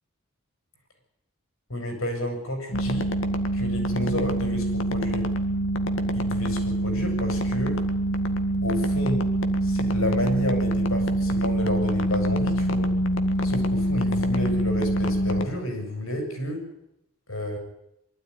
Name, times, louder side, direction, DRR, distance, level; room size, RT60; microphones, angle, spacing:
voice 1, 1.7-3.1 3.5-5.3 6.1-7.8 8.6-9.3 9.6-12.9 13.4-16.6 17.3-17.6, left 1 dB, 90° left, 4 dB, 6.9 m, -30 dB
sound 1, 2.7-15.5, right 1 dB, 70° left, 1.9 m, -25 dB
24.0 x 12.5 x 9.8 m, 0.83 s
head